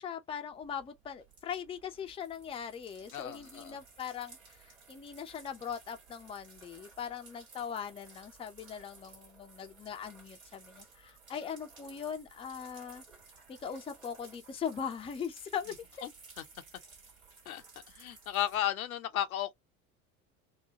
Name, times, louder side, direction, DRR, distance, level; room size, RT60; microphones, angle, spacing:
voice 1, 0.0-13.0 13.5-16.1, left 7 dB, 15° left, 0.5 m, -40 dB
sound 1, 0.5-18.6, right 4 dB, 70° right, 1.8 m, -57 dB
voice 2, 3.1-3.8 16.0-16.1 17.5-17.6 18.0-19.5, left 12 dB, 75° left, 0.7 m, -34 dB
4.0 x 2.2 x 2.8 m
figure-of-eight pair, 65°, 43 cm